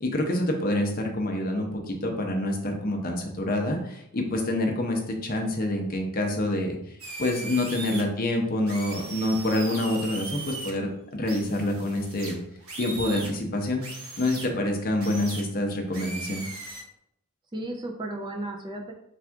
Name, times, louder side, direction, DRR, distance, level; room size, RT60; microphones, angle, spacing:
voice 1, 0.0-6.8 7.2-12.4 12.8-13.8 14.2-16.5, left 1 dB, 40° left, 2 dB, 0.6 m, -27 dB
sound 1, 7.0-8.0 8.7-10.7 11.2-13.3 13.8-14.5 15.0-15.4 15.9-16.8, right 3 dB, 70° right, 0.9 m, -38 dB
voice 2, 7.8-8.2 17.5-18.9, right 1 dB, 20° right, 1 dB, 0.3 m, -34 dB
3.4 x 2.4 x 4.4 m, 0.76 s
head